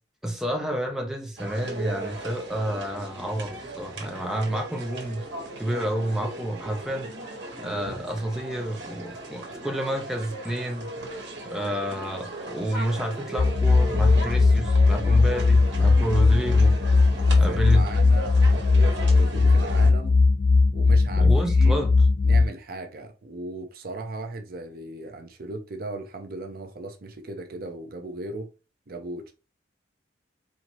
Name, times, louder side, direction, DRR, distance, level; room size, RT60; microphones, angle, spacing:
voice 1, 0.2-5.2 5.6-7.1 7.6-10.9 11.4-16.7 17.4-17.9 21.2-22.0, right 1 dB, 5° right, 0.8 m, -29 dB
sound 1, 1.4-19.9, right 2 dB, 75° right, 1.4 m, -37 dB
sound 2, 13.4-22.4, left 3 dB, 35° left, 0.4 m, -19 dB
voice 2, 17.0-20.2 20.7-21.9 22.2-28.5 28.9-29.3, right 2 dB, 55° right, 0.6 m, -37 dB
4.4 x 2.8 x 3.0 m
head